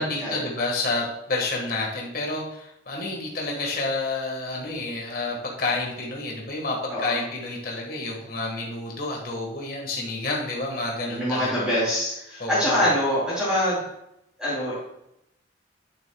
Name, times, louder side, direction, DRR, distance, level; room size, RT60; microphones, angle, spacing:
voice 1, 0.0-11.7 12.4-12.9, left 2 dB, 50° left, -1 dB, 1.5 m, -29 dB
voice 2, 11.1-13.9 14.4-14.7, equal, 5° right, -11 dB, 2.9 m, -24 dB
10.5 x 9.1 x 2.3 m, 0.82 s
head